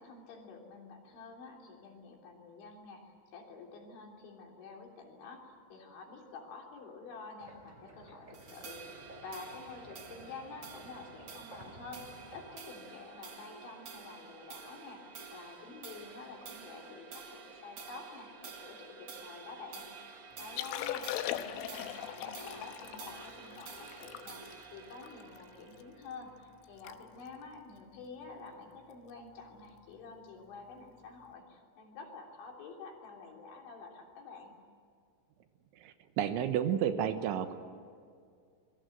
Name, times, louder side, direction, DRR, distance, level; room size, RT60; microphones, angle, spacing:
voice 1, 0.0-34.6, left 4 dB, 70° left, 1 dB, 5.5 m, -49 dB
sound 1, 7.4-12.6, right 1 dB, 10° right, 3.2 m, -54 dB
sound 2, 8.3-26.9, right 5 dB, 60° right, 1.5 m, -50 dB
Liquid, 20.4-25.8 26.3-26.4 26.6-27.0 27.2-27.5 28.1-28.3 29.8-29.9, left 12 dB, 90° left, 3.6 m, -40 dB
voice 2, 35.8-37.5, right 9 dB, 75° right, 9 dB, 3.4 m, -31 dB
26.5 x 22.5 x 8.0 m, 2.2 s
omnidirectional pair, 5.6 m